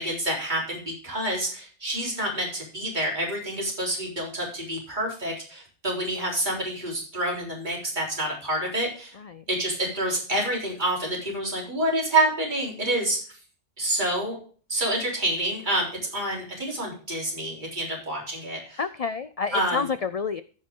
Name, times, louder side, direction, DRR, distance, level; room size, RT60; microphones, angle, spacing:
voice 1, 0.0-9.2 9.5-13.2 13.8-14.4 14.7-18.8 19.5-19.9, right 1 dB, 40° right, -3 dB, 4.0 m, -28 dB
voice 2, 18.8-20.4, left 5 dB, 55° left, 13 dB, 0.4 m, -29 dB
14.5 x 6.3 x 3.7 m, 0.41 s
omnidirectional pair, 1.2 m